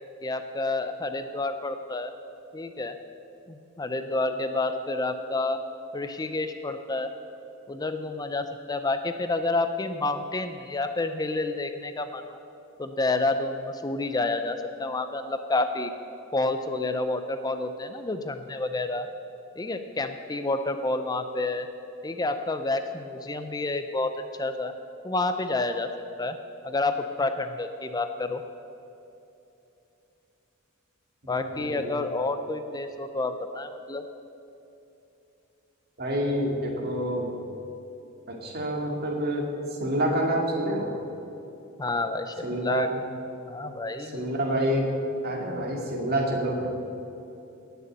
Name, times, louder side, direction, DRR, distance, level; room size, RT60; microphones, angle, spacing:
voice 1, 0.2-2.1 2.5-3.0 3.5-5.6 5.9-7.1 7.7-12.4 12.8-15.9 16.3-19.1 19.6-21.7 22.0-24.1 24.4-24.7 25.0-25.9 26.2-26.4 26.6-28.4 31.3-34.0 41.8-42.9 43.4-44.3, left 2 dB, 20° left, 8 dB, 0.5 m, -29 dB
voice 2, 31.2-31.9 36.0-37.3 38.3-41.0 42.4-43.0 44.0-44.9 45.2-46.7, right 1 dB, 50° right, 1 dB, 2.4 m, -28 dB
18.0 x 6.9 x 8.0 m, 2.9 s
head